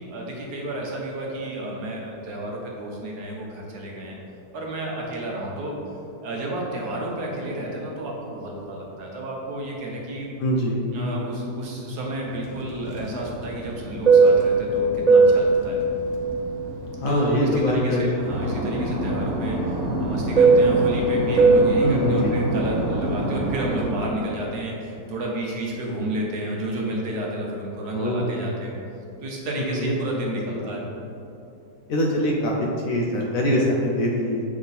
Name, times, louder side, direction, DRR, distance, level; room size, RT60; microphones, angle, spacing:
voice 1, 0.0-4.2 4.5-5.7 6.2-10.3 10.9-15.8 16.9-28.7 29.2-30.8, right 1 dB, 70° right, -2 dB, 1.4 m, -31 dB
voice 2, 10.4-10.9 17.0-18.1 18.4-18.6 21.8-22.4 27.9-28.4 29.7-29.9 30.3-30.7 31.9-34.4, equal, 65° left, -1 dB, 1.0 m, -24 dB
Fixed-wing aircraft airplane, 12.5-17.8 18.2-24.0, right 3 dB, 40° right, 0.6 m, -20 dB
7.2 x 3.6 x 4.0 m, 2.7 s
omnidirectional pair, 1.8 m